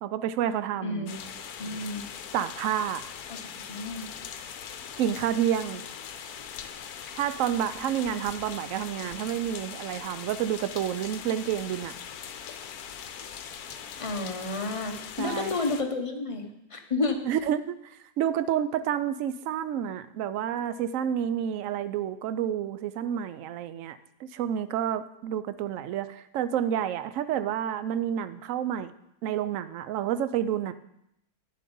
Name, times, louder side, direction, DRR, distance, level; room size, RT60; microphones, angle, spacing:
voice 1, 0.0-1.1 2.3-3.0 5.0-5.8 7.2-12.0 15.2-15.6 17.3-17.8 18.2-24.0 24.3-28.9 29.2-30.7, right 10 dB, 65° right, 13 dB, 0.8 m, -29 dB
voice 2, 0.8-1.2 1.6-2.0 3.3-3.4 3.7-4.1 14.0-17.2, left 3 dB, 25° left, 3 dB, 0.9 m, -31 dB
sound 1, 1.1-15.8, left 8 dB, 75° left, 1.2 m, -41 dB
10.0 x 7.3 x 5.3 m, 0.80 s
omnidirectional pair, 1.7 m